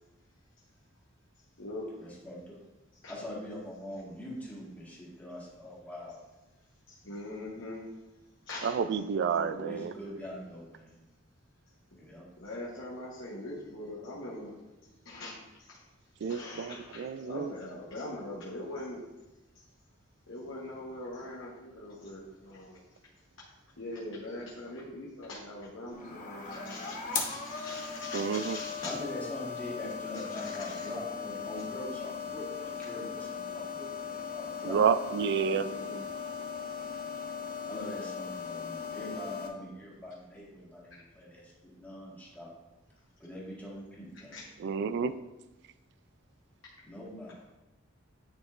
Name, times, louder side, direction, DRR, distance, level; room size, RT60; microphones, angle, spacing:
voice 1, 2.0-2.6 3.1-6.2 9.7-11.0 12.0-12.2 28.8-34.8 37.7-42.5 43.2-44.4 46.9-47.4, left 1 dB, 10° left, -6 dB, 1.6 m, -43 dB
voice 2, 6.9-7.9 8.5-9.0 9.3-10.2 12.4-14.6 15.0-15.7 16.2-19.0 20.3-22.8 23.8-28.9 30.1-30.9 35.6-36.1 44.3-44.4, left 1 dB, 75° left, -5 dB, 1.0 m, -42 dB
voice 3, 8.6-9.9 16.2-17.5 28.1-28.6 34.7-35.7 44.6-45.1, right 6 dB, 60° right, 12 dB, 0.3 m, -29 dB
sound 1, 25.9-39.5, left 6 dB, 45° left, 0.9 m, -38 dB
9.5 x 4.2 x 2.4 m, 1.0 s
head